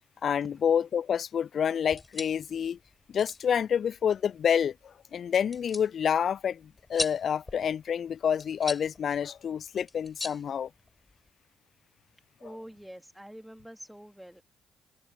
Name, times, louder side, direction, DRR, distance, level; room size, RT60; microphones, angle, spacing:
voice 1, 0.2-2.8 3.1-10.7, left 8 dB, 55° left, 0.4 m, -28 dB
sound 1, 1.8-11.3, left 2 dB, 20° left, 4.8 m, -42 dB
voice 2, 12.4-14.4, equal, 5° right, 2.4 m, -46 dB
hypercardioid pair, 50°, 0 cm